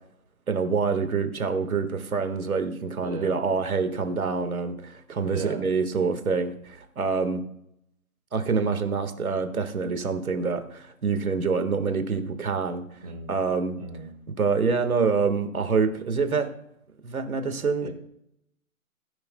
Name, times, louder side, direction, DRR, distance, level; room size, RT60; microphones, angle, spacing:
voice 1, 0.5-7.4 8.3-12.8 13.3-13.8 14.4-16.5 17.0-17.9, right 5 dB, 70° right, 8 dB, 1.7 m, -26 dB
voice 2, 3.0-3.4 5.2-5.6 13.0-13.4 13.8-14.1 17.8-17.9, right 4 dB, 25° right, 1 dB, 1.3 m, -37 dB
18.0 x 10.0 x 2.2 m, 0.75 s
hypercardioid pair, 175°, 44 cm